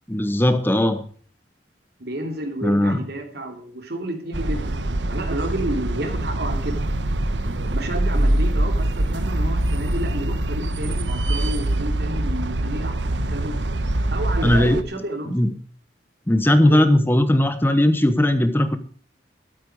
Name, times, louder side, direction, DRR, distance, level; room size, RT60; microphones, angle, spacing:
voice 1, 0.1-1.0 2.6-3.0 14.4-14.8 15.3-15.5 16.3-18.8, left 1 dB, 10° left, 10 dB, 1.0 m, -18 dB
voice 2, 2.0-4.8 5.1-6.8 7.4-13.5 14.1-15.3 16.7-16.8, right 1 dB, 60° right, 5 dB, 3.1 m, -31 dB
sound 1, 4.3-14.8, right 1 dB, 80° right, 1.1 m, -24 dB
13.0 x 13.0 x 4.9 m, 0.43 s
head